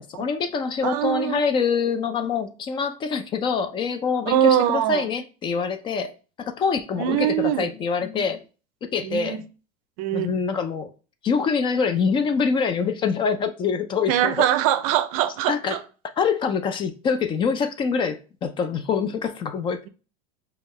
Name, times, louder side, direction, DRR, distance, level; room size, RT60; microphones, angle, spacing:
voice 1, 0.0-6.1 6.4-8.4 8.9-9.4 10.1-10.9 11.2-14.5 15.5-15.8 16.2-19.8, left 5 dB, 25° left, 0.4 m, -25 dB
voice 2, 0.8-1.4 4.3-5.1 7.0-7.7 9.0-9.4 10.0-10.3 14.1-15.8, right 11 dB, 65° right, 0.5 m, -22 dB
5.2 x 2.3 x 3.1 m
supercardioid pair, 135°, 19 cm